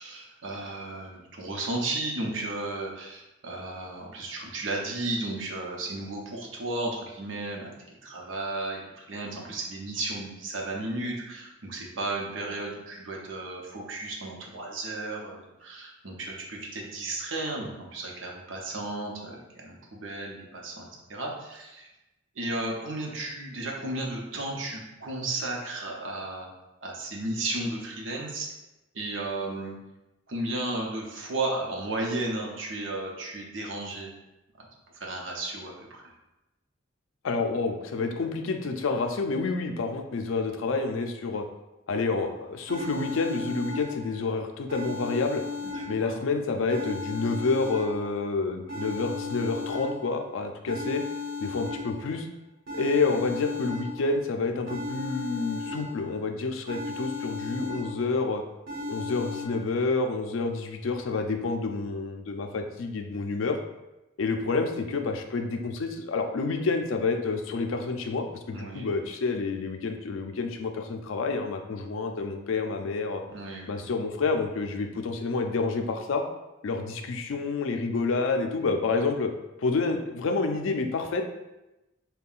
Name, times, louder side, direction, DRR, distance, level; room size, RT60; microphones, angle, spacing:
voice 1, 0.0-21.9 22.3-26.5 26.8-28.5 28.9-29.8 30.3-34.1 34.6-34.7 34.9-36.1 45.6-46.2 68.5-68.9 73.3-73.7, right 2 dB, 70° right, -1 dB, 0.7 m, -34 dB
voice 2, 37.2-41.5 41.9-45.4 45.9-51.0 51.4-52.3 52.7-58.4 58.9-63.6 64.2-73.2 73.7-76.2 76.6-79.3 79.6-81.2, left 3 dB, 80° left, 5 dB, 0.4 m, -28 dB
sound 1, 42.2-42.3 42.7-44.3 44.7-46.3 46.7-48.3 48.7-50.3 50.7-52.2 52.7-54.2 54.7-56.2 56.7-58.2 58.7-59.5, left 3 dB, 90° right, 1.1 m, -36 dB
5.4 x 2.2 x 2.4 m, 0.98 s
head